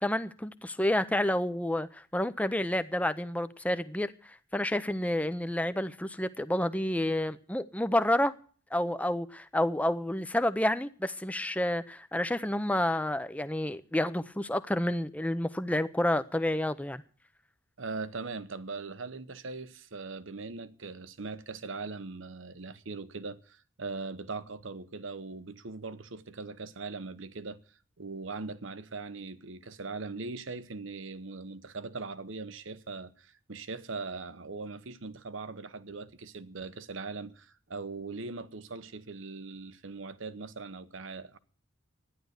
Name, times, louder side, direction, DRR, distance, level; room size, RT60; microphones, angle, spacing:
voice 1, 0.0-4.1 4.5-8.3 8.7-17.0, left 1 dB, 5° left, 0.6 m, -29 dB
voice 2, 17.8-27.6 28.0-41.4, right 3 dB, 70° right, 0.9 m, -40 dB
12.5 x 10.5 x 8.0 m
head